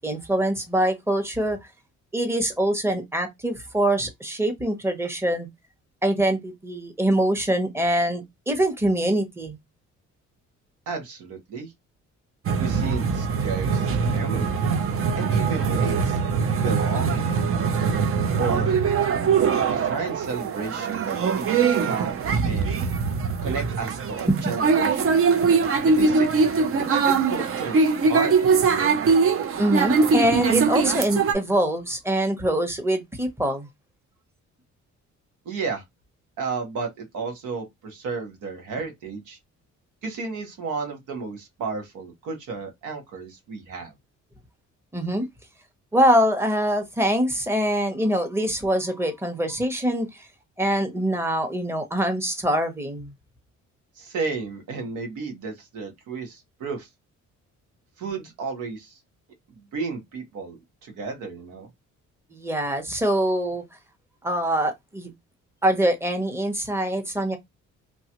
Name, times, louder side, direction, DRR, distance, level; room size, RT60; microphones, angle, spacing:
voice 1, 0.0-1.6 2.1-5.5 6.0-9.6 24.3-24.5 29.6-33.7 44.9-45.3 45.9-50.3 50.6-53.1 62.3-63.6 64.2-65.1 65.6-67.4, right 1 dB, 10° right, 0.9 m, -24 dB
voice 2, 10.9-11.7 12.6-14.6 15.2-16.2 16.6-17.4 18.4-18.8 19.7-22.8 23.4-25.2 25.9-26.3 26.9-29.0 35.4-35.8 36.4-39.4 40.0-43.9 54.0-56.9 58.0-59.0 59.5-61.7, right 4 dB, 90° right, 1.3 m, -33 dB
sound 1, 12.4-31.3, right 5 dB, 45° right, 0.6 m, -22 dB
2.9 x 2.3 x 2.9 m
cardioid pair, 90°, 30 cm